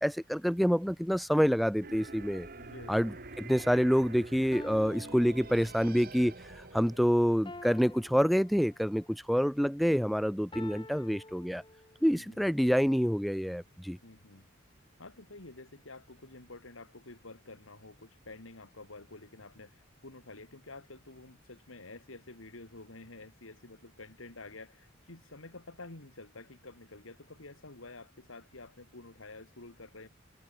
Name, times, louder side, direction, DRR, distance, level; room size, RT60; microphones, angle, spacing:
voice 1, 0.0-2.5 2.9-11.6 12.0-14.0, equal, ahead, 0.3 m, -27 dB
sound 1, 1.8-8.6, right 3 dB, 50° right, 2.4 m, -48 dB
voice 2, 2.6-3.0 12.1-12.5 14.0-14.5 15.0-30.1, left 2 dB, 85° left, 2.7 m, -49 dB
sound 2, 4.5-6.1 7.4-9.1 10.5-12.1, left 2 dB, 25° left, 2.5 m, -49 dB
head